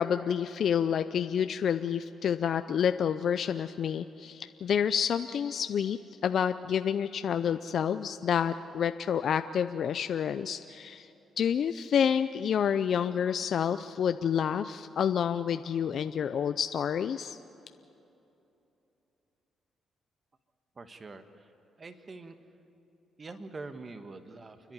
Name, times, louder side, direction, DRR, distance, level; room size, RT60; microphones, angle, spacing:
voice 1, 0.0-11.1 11.4-17.4, left 8 dB, 65° left, 10 dB, 0.5 m, -29 dB
voice 2, 20.8-21.5 21.8-22.3 23.2-24.7, right 3 dB, 35° right, 8 dB, 1.4 m, -44 dB
29.0 x 11.0 x 9.6 m, 2.9 s
cardioid pair, 80°, 0 cm